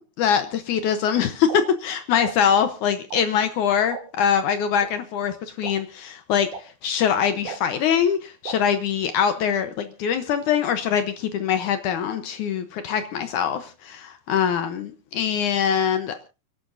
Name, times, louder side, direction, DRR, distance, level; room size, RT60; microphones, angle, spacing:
voice 1, 0.2-16.2, left 8 dB, 75° left, 1.8 m, -23 dB
sound 1, 1.5-1.6 2.2-2.3 3.1-3.2 3.9-4.0 4.8-4.9 5.6-5.7 6.5-6.6 7.4-7.6 8.4-8.5, right 6 dB, 60° right, 3.2 m, -34 dB
30.0 x 11.5 x 2.6 m
omnidirectional pair, 4.7 m